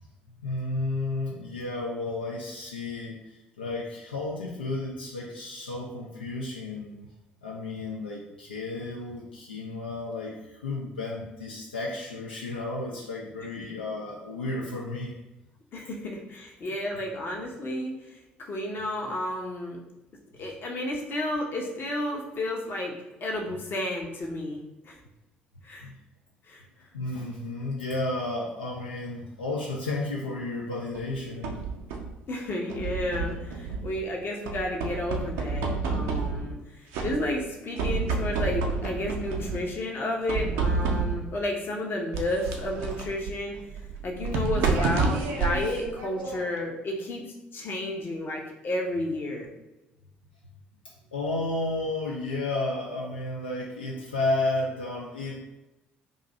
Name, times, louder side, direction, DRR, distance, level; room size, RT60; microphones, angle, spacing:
voice 1, 0.4-7.0 7.4-15.1 25.8-25.9 26.9-31.5 51.1-55.4, left 2 dB, 80° left, -3 dB, 0.4 m, -32 dB
voice 2, 15.7-19.8 20.4-25.0 25.6-25.9 26.5-26.6 30.9-31.0 32.3-43.6 44.0-49.5, left 1 dB, 40° left, 0 dB, 0.8 m, -32 dB
sound 1, 30.9-32.2 32.7-34.0 34.5-36.6 36.9-37.5 37.8-39.7 40.3-41.4 42.1-46.6, right 4 dB, 60° right, 0.5 m, -30 dB
2.6 x 2.4 x 4.1 m, 1.0 s
figure-of-eight pair, 50°, 5 cm